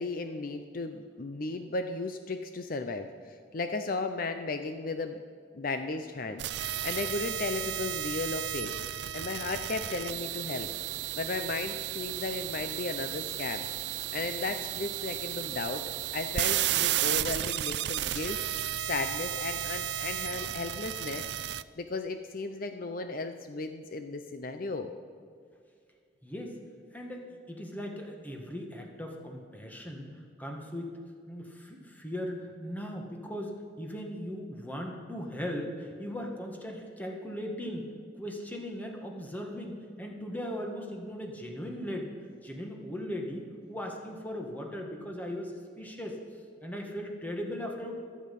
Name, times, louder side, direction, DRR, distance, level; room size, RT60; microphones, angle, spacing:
voice 1, 0.0-5.2 5.5-8.7 9.1-10.7 11.2-13.7 14.1-18.4 18.9-21.2 21.8-24.9, left 3 dB, 50° left, 7 dB, 0.6 m, -35 dB
sound 1, 6.4-21.6, right 12 dB, 70° right, 0.4 m, -33 dB
voice 2, 26.2-26.6 26.9-31.0 31.3-37.9 38.1-42.1 42.4-46.2 46.6-47.9, equal, 10° left, 1 dB, 1.7 m, -38 dB
24.5 x 8.7 x 5.4 m, 2.2 s
head